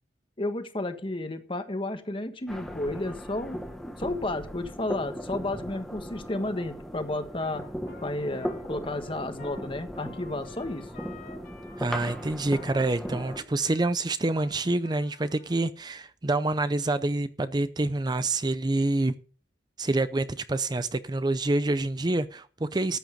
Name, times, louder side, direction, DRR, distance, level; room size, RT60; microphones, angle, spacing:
voice 1, 0.4-3.6 4.0-7.6 8.0-10.8, left 2 dB, 30° left, 1.4 m, -32 dB
sound 1, 2.5-13.4, equal, ahead, 1.6 m, -38 dB
Trumpet, 7.4-15.6, left 5 dB, 55° left, 3.1 m, -52 dB
voice 2, 11.8-19.1 19.8-23.0, right 2 dB, 25° right, 0.5 m, -27 dB
14.0 x 9.2 x 5.2 m
head